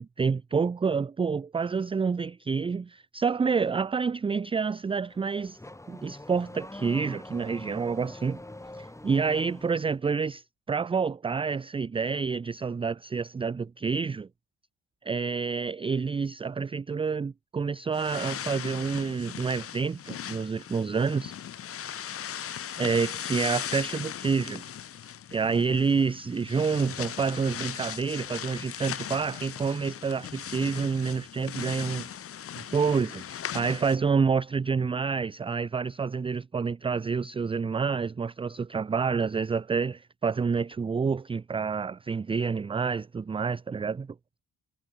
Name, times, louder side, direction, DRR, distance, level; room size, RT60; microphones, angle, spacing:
voice 1, 0.2-5.6 5.9-8.4 8.7-14.3 15.1-21.3 22.8-24.6 25.3-32.1 32.6-44.1, right 5 dB, 20° right, 0.4 m, -28 dB
Car / Accelerating revving vroom, 4.9-9.9, left 1 dB, 10° left, 4.4 m, -45 dB
sound 1, 17.9-34.0, left 9 dB, 50° left, 1.0 m, -38 dB
cardioid pair, 90°, 30 cm